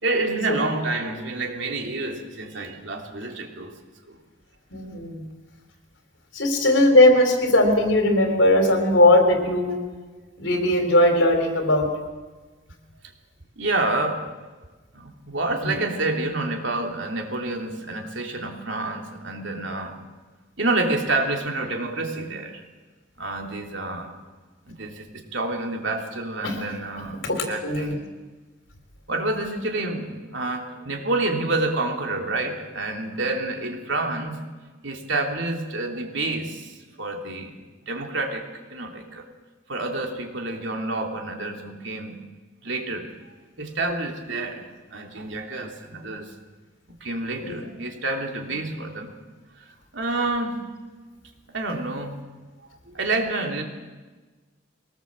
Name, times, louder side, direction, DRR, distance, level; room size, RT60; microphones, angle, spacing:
voice 1, 0.0-3.7 4.1-4.2 13.6-14.2 14.9-19.9 20.6-22.6 23.2-24.1 24.7-28.0 29.1-34.4 34.8-37.5 37.8-39.2 39.7-42.2 42.6-43.1 43.6-44.7 44.9-46.3 47.0-49.2 49.9-50.7 51.5-52.2 52.9-53.6, right 2 dB, 65° right, 2 dB, 3.3 m, -28 dB
voice 2, 4.7-5.3 6.3-9.8 10.4-11.9 15.6-15.7 26.4-26.5 27.2-27.9 47.4-47.5, left 1 dB, 70° left, 5 dB, 3.8 m, -19 dB
22.0 x 19.0 x 7.6 m, 1.3 s
head